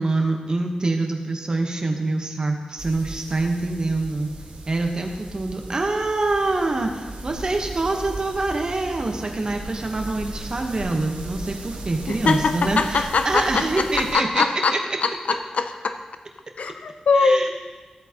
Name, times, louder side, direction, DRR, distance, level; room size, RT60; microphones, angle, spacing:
voice 1, 0.0-4.3 4.7-14.4 14.7-14.8 17.1-17.5, right 2 dB, 35° right, 3 dB, 1.1 m, -25 dB
sound 1, 2.8-14.2, right 2 dB, 75° right, 1.4 m, -37 dB
voice 2, 12.1-16.0 16.6-17.5, left 4 dB, 70° left, 8 dB, 0.5 m, -22 dB
13.5 x 8.0 x 2.9 m, 1.3 s
wide cardioid pair, 130°, 2 cm